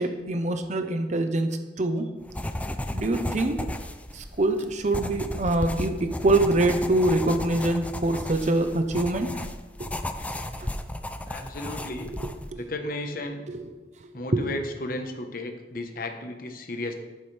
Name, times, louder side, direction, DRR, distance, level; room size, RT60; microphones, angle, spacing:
voice 1, 0.0-2.1 2.9-3.7 4.1-9.4 9.8-9.9 10.6-10.7 12.0-12.6 13.5-13.7 14.2-14.4, right 2 dB, 40° right, 7 dB, 0.8 m, -25 dB
sound 1, 2.2-12.5, left 1 dB, 10° left, 0.5 m, -34 dB
voice 2, 11.3-12.1 12.5-13.4 14.1-16.9, left 1 dB, 55° left, 5 dB, 1.1 m, -34 dB
11.0 x 10.0 x 3.4 m, 1.2 s
head